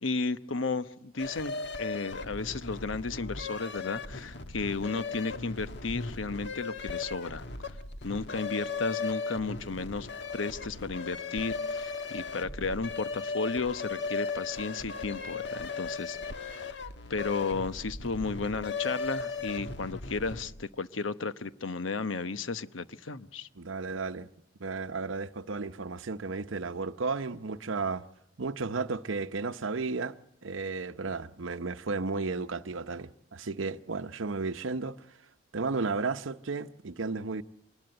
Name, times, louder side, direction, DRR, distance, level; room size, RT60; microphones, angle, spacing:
voice 1, 0.0-7.8 8.0-10.1 10.3-16.2 16.5-16.8 17.1-23.5, left 4 dB, 85° left, 1.0 m, -34 dB
sound 1, 1.2-20.6, left 4 dB, 65° left, 1.4 m, -37 dB
voice 2, 23.6-24.3 24.6-28.1 28.4-30.1 30.4-35.2 35.5-37.4, right 4 dB, 90° right, 0.8 m, -33 dB
24.5 x 20.5 x 7.8 m
head